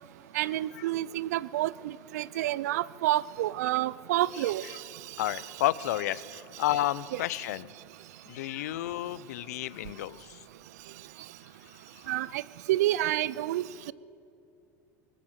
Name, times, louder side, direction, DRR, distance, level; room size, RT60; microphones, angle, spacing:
voice 1, 0.3-4.7 12.1-12.4 12.7-13.9, right 15 dB, 80° right, 21 dB, 0.5 m, -29 dB
voice 2, 5.2-7.7 8.3-10.4 12.1-12.2, left 14 dB, 80° left, 19 dB, 0.6 m, -31 dB
21.5 x 19.5 x 7.5 m, 2.6 s
hypercardioid pair, 85°, 9 cm